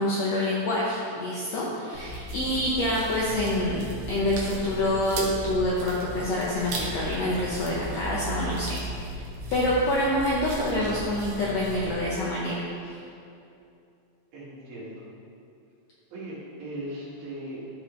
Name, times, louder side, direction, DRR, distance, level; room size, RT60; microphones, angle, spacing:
voice 1, 0.0-3.8 4.1-8.8 9.1-9.2 9.5-12.6, left 1 dB, 75° left, -5 dB, 1.5 m, -26 dB
sound 1, 1.9-11.9, right 1 dB, 65° right, 1.6 m, -36 dB
voice 2, 14.3-15.1 16.1-17.6, right 1 dB, 85° right, -8 dB, 4.0 m, -38 dB
13.0 x 5.1 x 3.1 m, 2.6 s
omnidirectional pair, 4.1 m